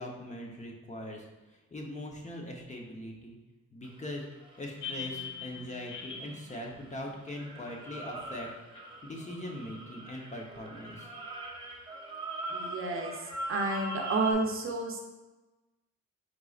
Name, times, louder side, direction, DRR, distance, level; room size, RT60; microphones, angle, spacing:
voice 1, 0.0-3.4 3.7-4.3 4.6-8.5 9.0-11.1, left 1 dB, 25° left, 0 dB, 0.8 m, -41 dB
sound 1, 3.8-6.9 7.3-14.3, right 1 dB, 15° right, 0.9 m, -41 dB
sound 2, 4.8-7.8 8.7-8.8, left 6 dB, 75° left, 0.9 m, -42 dB
voice 2, 12.5-13.2 13.5-15.0, right 3 dB, 45° right, 2 dB, 0.8 m, -30 dB
4.6 x 3.9 x 2.4 m, 1.1 s
cardioid pair, 90°, 30 cm